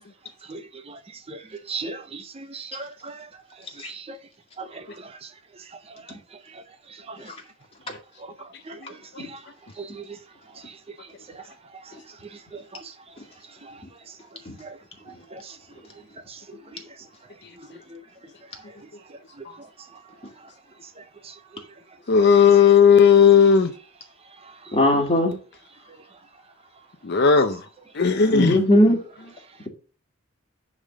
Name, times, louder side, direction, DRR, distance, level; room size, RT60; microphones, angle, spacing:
voice 1, 0.4-1.0 1.3-3.3 3.8-4.2 4.6-5.3 5.9-6.1 6.5-6.6 6.9-7.3 8.2-9.4 9.8-10.2 10.6-10.8 11.3-11.4 11.7-12.0 12.2-12.9 13.6-13.8 14.6-14.8 15.3-15.6 16.3-16.4 16.7-16.8 17.6-18.0 19.1-19.2 19.6-20.0 21.0-21.3 24.4-24.8, right 4 dB, 30° right, 0.6 m, -40 dB
voice 2, 22.1-23.7 27.0-27.6 27.9-28.6, left 6 dB, 50° left, 0.6 m, -15 dB
voice 3, 24.7-25.4 28.3-29.0, left 1 dB, 25° left, 2.1 m, -18 dB
10.0 x 3.6 x 6.3 m
head